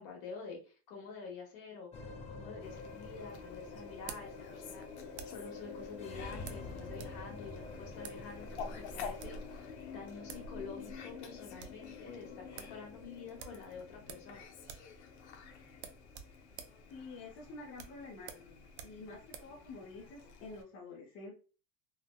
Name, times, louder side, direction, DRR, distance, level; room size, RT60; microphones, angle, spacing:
voice 1, 0.0-4.8 5.2-14.5, left 5 dB, 60° left, 0 dB, 1.4 m, -48 dB
sound 1, 1.9-20.4, left 4 dB, 20° left, 0.4 m, -48 dB
Fowl, 2.6-20.6, left 4 dB, 85° left, 0.7 m, -51 dB
sound 2, 2.6-5.5 6.4-7.2 7.4-7.5 8.0-8.2 9.0-9.5 10.0-10.1 10.3-10.5 10.8-10.9 11.2-11.8 12.2-12.3 12.6-12.8 13.4-14.4 14.6-15.0 15.2-15.3 15.7-19.6, right 8 dB, 75° right, 0.6 m, -50 dB
voice 2, 16.9-18.3 18.8-21.3, left 3 dB, 40° left, -3 dB, 0.8 m, -48 dB
3.4 x 2.1 x 2.2 m, 0.36 s
supercardioid pair, 125°, 33 cm